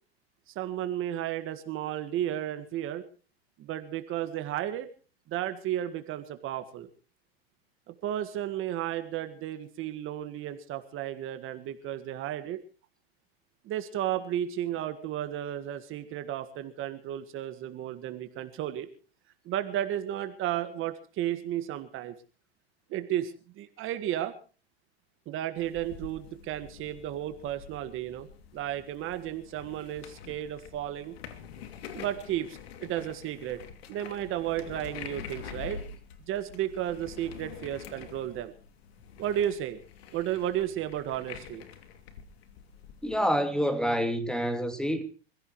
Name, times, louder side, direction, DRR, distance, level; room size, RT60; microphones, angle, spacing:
voice 1, 0.5-3.1 3.6-4.9 5.3-6.9 7.9-12.6 13.6-18.9 19.5-22.2 22.9-24.3 25.3-28.3 28.5-31.2 31.9-33.6 33.9-35.8 36.3-38.5 39.2-39.8 40.1-41.6, right 12 dB, 40° right, 1.8 m, -33 dB
sound 1, 25.6-43.2, left 7 dB, 75° left, 2.8 m, -46 dB
voice 2, 43.0-45.0, equal, ahead, 2.8 m, -27 dB
26.0 x 16.0 x 3.2 m
hypercardioid pair, 115°, 31 cm